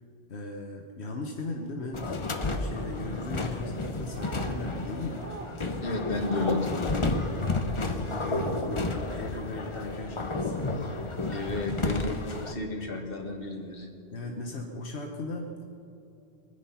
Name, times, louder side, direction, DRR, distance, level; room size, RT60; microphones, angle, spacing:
voice 1, 0.3-5.2 7.8-10.7 14.1-15.6, left 2 dB, 85° left, 2 dB, 1.4 m, -38 dB
sound 1, 1.9-12.5, left 2 dB, 30° left, 0.9 m, -31 dB
sound 2, 4.0-4.6 5.1-5.5 6.1-6.7 7.3-7.6 8.1-8.6, right 4 dB, 90° right, 1.6 m, -42 dB
voice 2, 5.8-7.0 11.3-13.9, left 2 dB, 60° left, 2 dB, 2.1 m, -32 dB
23.0 x 9.8 x 5.7 m, 2.9 s
omnidirectional pair, 1.1 m